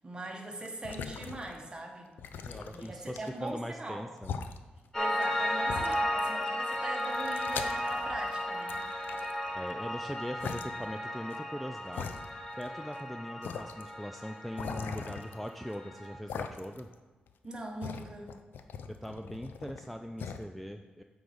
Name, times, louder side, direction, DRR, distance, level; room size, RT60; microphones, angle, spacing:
voice 1, 0.0-2.1 2.7-4.0 4.9-8.9 17.4-18.4, right 1 dB, 25° right, 1 dB, 1.2 m, -41 dB
sound 1, 0.6-1.7 2.2-3.5 4.2-4.6 5.2-5.3 5.7-6.4 6.7-8.3 8.7-9.7 10.4-10.6 11.3-11.4 11.9-12.7 12.9-13.0 13.4-13.8 14.6-15.7 16.3-16.9 17.3-19.9 20.2-20.4, left 6 dB, 90° left, 0.4 m, -41 dB
voice 2, 2.5-4.5 9.2-9.3 9.5-16.9 18.9-21.0, equal, ahead, 5 dB, 0.3 m, -41 dB
Piano, 4.9-16.2, equal, 20° left, 1.1 m, -35 dB
8.2 x 3.9 x 5.0 m, 1.3 s
cardioid pair, 95°, 3 cm